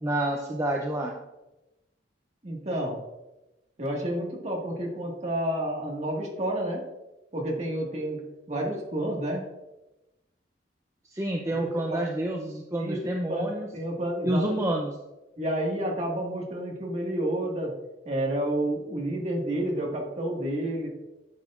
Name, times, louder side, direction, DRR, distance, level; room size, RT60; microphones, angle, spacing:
voice 1, 0.0-1.1 11.1-13.7 14.2-14.9, right 1 dB, 15° right, 1 dB, 0.5 m, -28 dB
voice 2, 2.4-3.0 3.8-6.8 7.3-8.2 8.5-9.4 11.5-12.0 12.8-13.0 13.3-14.6 15.4-17.7 18.1-20.9, right 1 dB, 40° right, -1 dB, 1.7 m, -30 dB
10.5 x 7.1 x 2.5 m, 1.0 s
head